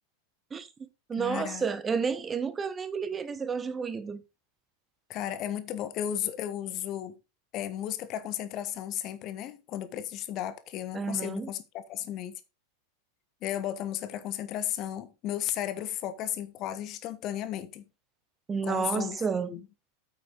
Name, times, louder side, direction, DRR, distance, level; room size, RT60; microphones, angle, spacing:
voice 1, 0.5-4.2 10.9-11.5 18.5-19.5, right 5 dB, 20° right, 1.2 m, -31 dB
voice 2, 1.2-1.7 5.1-7.2 7.5-12.4 13.4-17.8 18.6-19.2 19.4-19.7, left 11 dB, 35° left, 1.2 m, -34 dB
8.6 x 8.3 x 3.9 m
figure-of-eight pair, 90°, 0 cm